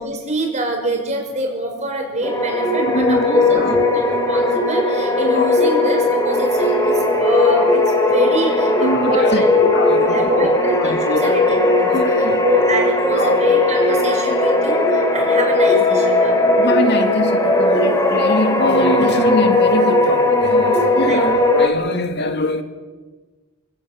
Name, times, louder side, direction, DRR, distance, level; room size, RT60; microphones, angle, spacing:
voice 1, 0.0-9.6 10.0-11.9 12.4-16.4 21.1-21.3, right 1 dB, 35° right, 2 dB, 6.4 m, -25 dB
sound 1, 2.2-21.7, left 2 dB, 15° left, 3.2 m, -17 dB
voice 2, 2.8-3.8 5.3-5.6 8.8-10.5 10.8-11.4 11.9-12.4 13.2-13.4 16.6-22.6, left 1 dB, 50° left, 7 dB, 2.3 m, -23 dB
28.5 x 18.0 x 7.9 m, 1.3 s
head